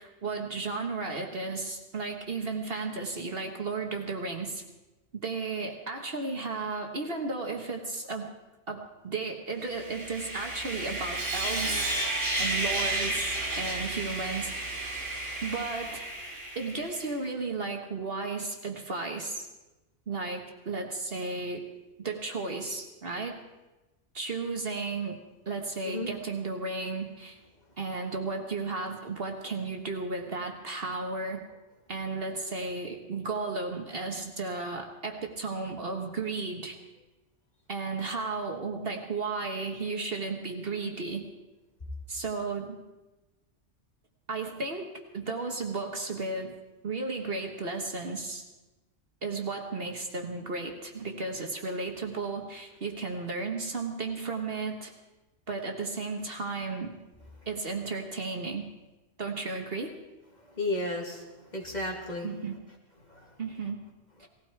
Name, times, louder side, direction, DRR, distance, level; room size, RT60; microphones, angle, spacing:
voice 1, 0.0-4.6 5.1-8.3 8.7-11.9 12.4-14.5 15.4-16.0 16.5-19.5 20.1-21.7 22.0-23.4 24.1-25.2 25.5-27.4 27.8-31.4 31.9-36.8 37.7-41.3 42.1-42.8 44.3-44.9 45.1-46.6 46.8-48.4 49.2-54.9 55.5-57.0 57.5-58.7 59.2-59.9 62.2-62.6 63.4-63.8 64.2-64.3, right 3 dB, 50° right, 3 dB, 1.5 m, -34 dB
Sawing, 9.7-17.1, right 2 dB, 75° right, 3.0 m, -32 dB
voice 2, 60.5-61.3 61.5-62.3 63.1-63.3, left 2 dB, 35° left, -1 dB, 2.7 m, -33 dB
19.0 x 15.0 x 4.6 m, 1.1 s
omnidirectional pair, 1.3 m